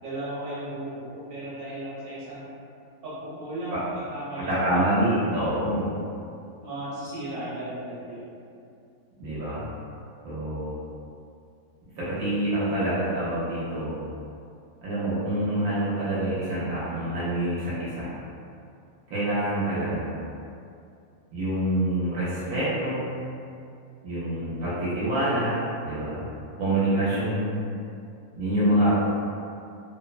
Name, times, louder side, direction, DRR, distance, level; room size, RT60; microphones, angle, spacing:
voice 1, 0.0-2.5 3.0-3.8 4.1-4.5 5.2-5.7 6.6-8.3 24.3-24.7, right 1 dB, 45° right, -10 dB, 1.0 m, -36 dB
voice 2, 4.4-5.9 9.2-9.6 10.2-10.8 12.0-14.0 14.8-18.1 19.1-20.1 21.3-23.1 24.0-25.5 25.8-26.2 26.6-27.6 28.4-28.9, right 1 dB, 75° right, -11 dB, 1.1 m, -26 dB
2.9 x 2.0 x 2.3 m, 2.5 s
omnidirectional pair, 1.6 m